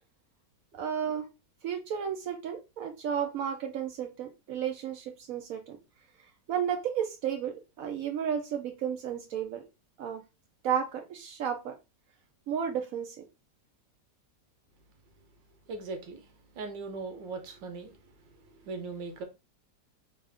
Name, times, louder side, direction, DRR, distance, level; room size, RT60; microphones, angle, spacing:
voice 1, 0.7-1.3 1.6-5.8 6.5-9.6 10.0-10.2 10.6-11.7 12.5-13.2, right 8 dB, 75° right, 0.8 m, -33 dB
voice 2, 15.7-16.2 16.5-18.0 18.6-19.2, right 3 dB, 90° right, 1.6 m, -39 dB
3.7 x 2.4 x 3.4 m
omnidirectional pair, 2.0 m